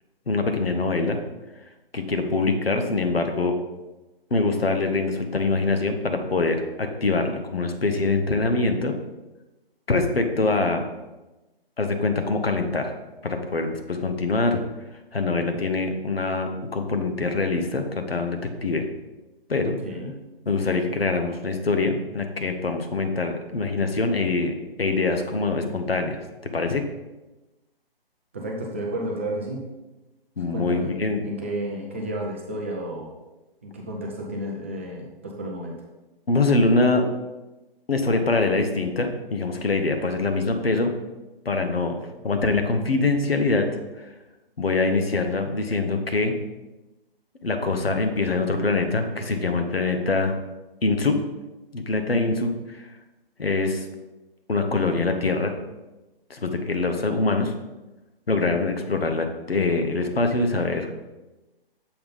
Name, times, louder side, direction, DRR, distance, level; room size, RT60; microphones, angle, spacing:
voice 1, 0.3-1.2 1.9-3.5 4.3-9.0 9.9-10.9 11.8-12.9 13.2-14.6 15.1-18.9 19.5-19.8 20.5-26.8 30.4-31.2 36.3-37.1 37.9-40.9 41.4-43.7 44.0-44.1 44.6-46.3 47.4-50.4 50.8-51.2 51.7-52.9 53.4-53.9 54.5-55.5 56.3-57.5 58.3-60.9, left 3 dB, 75° left, 5 dB, 1.0 m, -24 dB
voice 2, 28.3-29.6 30.5-30.9 31.2-33.1 33.6-35.7, right 1 dB, 15° right, -2 dB, 0.4 m, -32 dB
6.9 x 3.9 x 5.1 m, 1.1 s
figure-of-eight pair, 140°, 30 cm